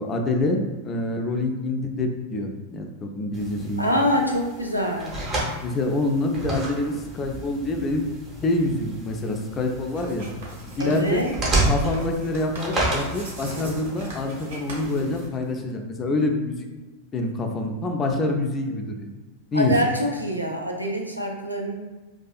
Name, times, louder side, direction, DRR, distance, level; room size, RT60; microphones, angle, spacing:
voice 1, 0.0-4.0 5.6-8.0 8.4-10.3 10.8-11.3 11.7-16.7 17.1-19.1 19.5-19.7, left 2 dB, 25° left, 3 dB, 0.3 m, -26 dB
sound 1, 3.3-15.3, right 1 dB, 25° right, 0.7 m, -31 dB
voice 2, 3.8-5.2 10.8-11.3 19.5-21.8, equal, 90° right, 1 dB, 0.3 m, -25 dB
Writing, 9.9-15.7, right 1 dB, 65° right, 0.7 m, -40 dB
2.5 x 2.3 x 2.3 m, 1.3 s
figure-of-eight pair, 90°, 0 cm